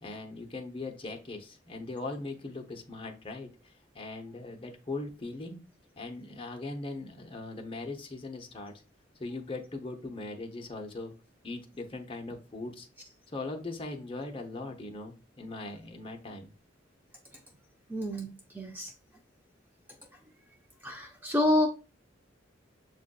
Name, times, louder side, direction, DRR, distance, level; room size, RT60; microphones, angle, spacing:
voice 1, 0.0-5.6 6.0-8.7 9.2-11.1 11.4-12.9 13.3-16.5, left 2 dB, 30° left, 3 dB, 0.6 m, -40 dB
voice 2, 17.9-18.9 20.8-21.7, left 1 dB, 10° right, 3 dB, 0.3 m, -28 dB
6.9 x 2.5 x 2.2 m, 0.33 s
head